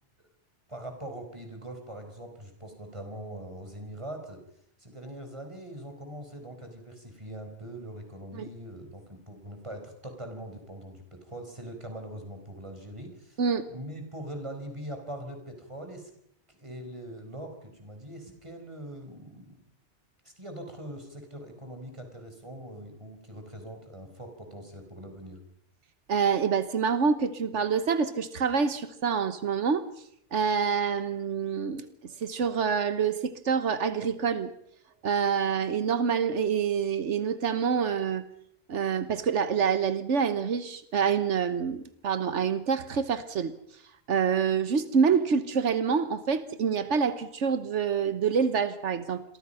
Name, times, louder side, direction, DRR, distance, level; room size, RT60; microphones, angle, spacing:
voice 1, 0.7-4.4 4.8-13.4 13.7-16.1 16.5-19.6 20.2-25.4, right 1 dB, 25° right, 5 dB, 5.0 m, -42 dB
voice 2, 26.1-29.9 30.3-34.5 35.0-38.2 38.7-43.8 44.1-49.2, right 6 dB, 85° right, 12 dB, 1.4 m, -27 dB
28.5 x 22.5 x 5.7 m, 0.72 s
omnidirectional pair, 1.2 m